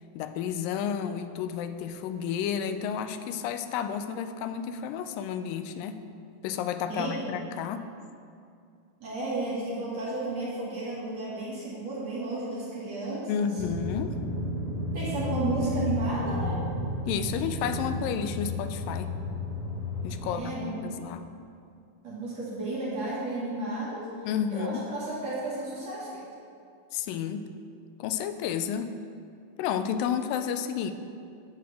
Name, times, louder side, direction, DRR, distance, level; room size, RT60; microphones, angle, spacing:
voice 1, 0.1-6.0 6.4-7.8 13.3-14.2 17.1-19.1 20.0-21.3 24.3-24.8 26.9-27.4 28.0-28.9 29.6-30.9, left 8 dB, 85° left, 9 dB, 2.3 m, -31 dB
voice 2, 6.9-7.4 9.0-13.5 14.9-16.6 20.2-20.8 22.0-24.1 24.5-26.2, right 2 dB, 55° right, -8 dB, 2.9 m, -33 dB
sound 1, 13.6-20.3, left 1 dB, 30° right, 1.1 m, -32 dB
9.3 x 4.8 x 7.3 m, 2.4 s
omnidirectional pair, 3.9 m